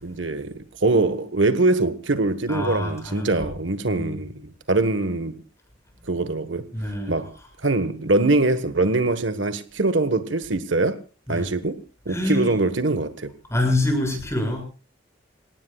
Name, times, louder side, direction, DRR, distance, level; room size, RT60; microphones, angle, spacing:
voice 1, 0.0-5.4 6.1-6.6 7.1-7.3 7.6-11.0 11.3-11.8 12.0-13.3, right 2 dB, 75° right, 1.5 m, -23 dB
voice 2, 2.5-3.5 3.8-4.2 6.7-7.3 11.3-11.5 12.1-12.5 13.5-14.6, left 1 dB, 15° left, 6.8 m, -26 dB
27.5 x 18.5 x 2.4 m
head